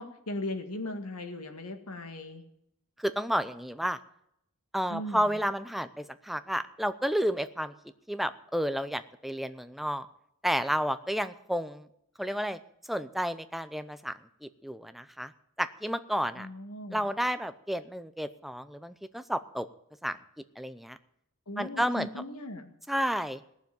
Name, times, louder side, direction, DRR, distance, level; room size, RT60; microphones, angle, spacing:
voice 1, 0.0-2.4 4.9-5.4 16.4-17.1 21.5-22.7, left 1 dB, 85° left, 5 dB, 2.0 m, -38 dB
voice 2, 3.0-4.0 4.7-7.7 8.1-10.1 10.4-11.9 12.2-12.6 12.9-15.3 15.6-16.5 16.9-19.7 20.0-20.2 20.6-21.0 21.6-22.1 22.9-23.4, equal, ahead, 11 dB, 0.6 m, -31 dB
18.5 x 7.2 x 9.3 m, 0.76 s
head